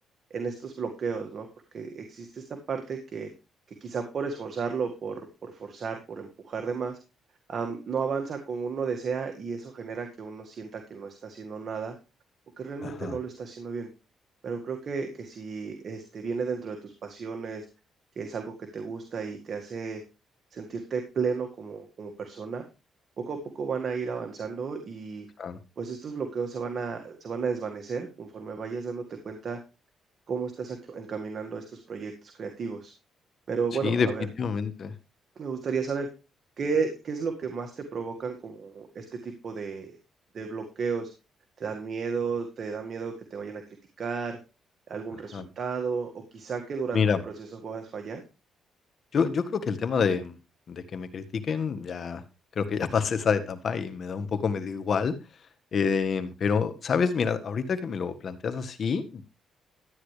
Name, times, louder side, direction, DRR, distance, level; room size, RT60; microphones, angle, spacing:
voice 1, 0.3-3.3 3.8-7.0 7.5-12.0 12.6-13.9 14.4-17.7 18.2-20.0 20.5-22.7 23.2-25.3 25.8-29.6 30.3-32.9 33.5-34.3 35.4-36.1 36.6-39.9 40.3-41.1 41.6-43.6 44.0-44.4 44.9-48.2, right 5 dB, 50° right, 4 dB, 1.9 m, -33 dB
voice 2, 12.8-13.2 25.4-25.6 33.8-34.1 34.4-34.9 45.3-45.4 46.9-47.2 49.1-50.3 50.7-52.2 52.5-55.1 55.7-59.2, left 6 dB, 50° left, 10 dB, 1.6 m, -27 dB
13.0 x 9.5 x 3.3 m, 0.29 s
cardioid pair, 90°, 0 cm